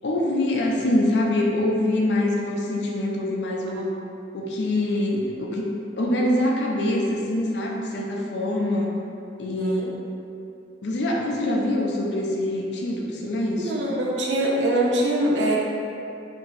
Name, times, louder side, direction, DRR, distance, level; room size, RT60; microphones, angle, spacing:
voice 1, 0.0-3.9 4.3-5.7 6.0-9.0 9.4-9.8 10.8-13.8, left 1 dB, 70° left, -1 dB, 0.5 m, -24 dB
voice 2, 9.6-9.9 13.6-15.6, right 1 dB, 90° right, -2 dB, 0.6 m, -23 dB
2.9 x 2.6 x 4.0 m, 2.6 s
head